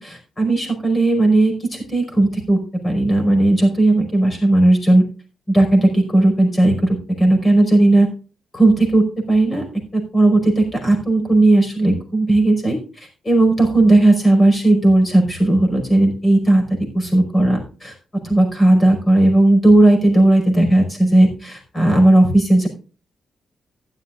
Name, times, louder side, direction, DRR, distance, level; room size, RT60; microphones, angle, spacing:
voice 1, 0.0-5.0 5.5-8.1 8.5-9.6 9.9-16.6 16.9-17.9 18.2-22.7, right 2 dB, 25° left, 4 dB, 5.1 m, -15 dB
15.0 x 12.0 x 2.5 m, 0.35 s
cardioid pair, 135°, 0 cm